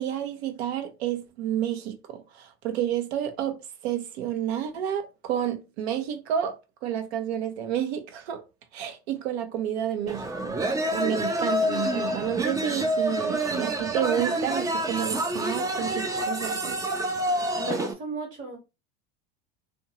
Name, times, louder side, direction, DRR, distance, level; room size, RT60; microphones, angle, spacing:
voice 1, 0.0-3.6 3.8-6.5 6.8-8.4 8.7-10.6 10.9-16.8, right 10 dB, 75° right, 0.8 m, -30 dB
sound 1, 10.1-17.9, right 1 dB, 10° right, 0.4 m, -27 dB
voice 2, 17.6-18.6, right 2 dB, 40° right, 1.3 m, -34 dB
2.6 x 2.3 x 2.9 m
hypercardioid pair, 95°, 32 cm